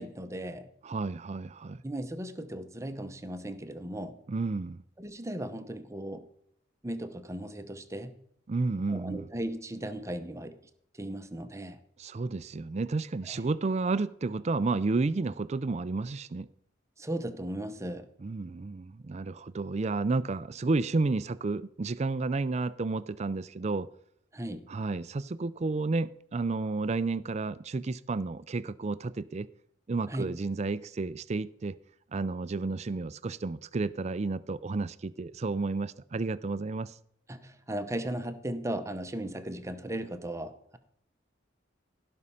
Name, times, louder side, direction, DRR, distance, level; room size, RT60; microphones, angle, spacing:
voice 1, 0.0-0.7 1.8-4.2 5.0-6.2 6.8-8.2 8.9-10.6 10.9-11.8 13.3-13.5 17.0-18.1 24.3-24.7 30.1-30.3 37.3-40.8, right 1 dB, 15° right, 0.8 m, -37 dB
voice 2, 0.8-1.8 4.3-4.8 8.5-9.3 12.0-16.5 18.2-23.9 24.7-29.5 29.9-31.8 32.1-37.0, right 3 dB, 35° right, 0.4 m, -31 dB
16.5 x 5.5 x 5.6 m
head